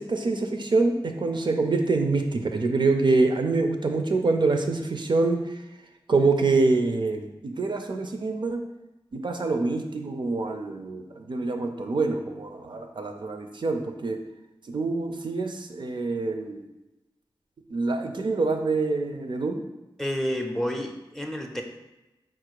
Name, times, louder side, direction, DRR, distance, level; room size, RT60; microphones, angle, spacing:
voice 1, 0.0-5.6 6.1-8.6 9.1-14.2 14.7-16.7 17.7-19.6, right 3 dB, 60° right, 4 dB, 0.4 m, -25 dB
voice 2, 20.0-21.6, equal, 5° left, 3 dB, 0.5 m, -29 dB
4.3 x 2.4 x 4.6 m, 1.0 s
wide cardioid pair, 75°, 9 cm